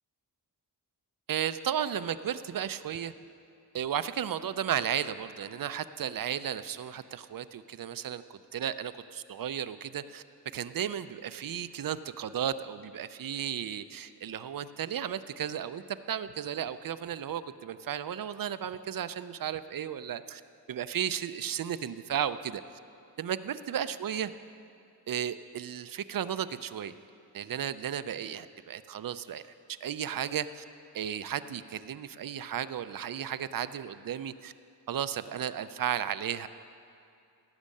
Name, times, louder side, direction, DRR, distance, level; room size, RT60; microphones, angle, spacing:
voice 1, 1.3-3.1 3.7-10.2 10.5-20.4 20.7-22.6 23.2-24.3 25.1-26.9 27.3-29.4 29.8-30.6 30.9-34.5 34.9-36.5, right 9 dB, 55° right, 13 dB, 0.5 m, -34 dB
17.0 x 6.4 x 8.4 m, 2.5 s
wide cardioid pair, 170°, 41 cm